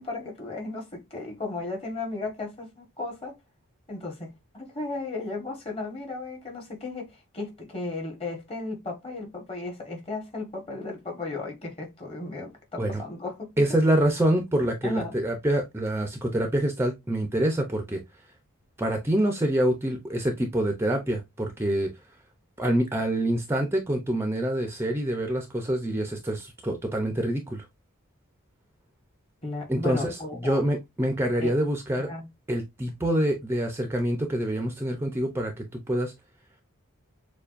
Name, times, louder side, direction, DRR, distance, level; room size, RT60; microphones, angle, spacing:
voice 1, 0.0-3.3 3.9-13.5 14.8-15.1 29.4-30.6 31.4-31.5 32.0-32.3, left 3 dB, 30° left, 1.4 m, -35 dB
voice 2, 13.6-18.0 18.8-21.9 22.6-27.6 29.7-32.1 32.5-36.1, right 1 dB, 10° right, 0.5 m, -26 dB
6.8 x 2.3 x 2.5 m
head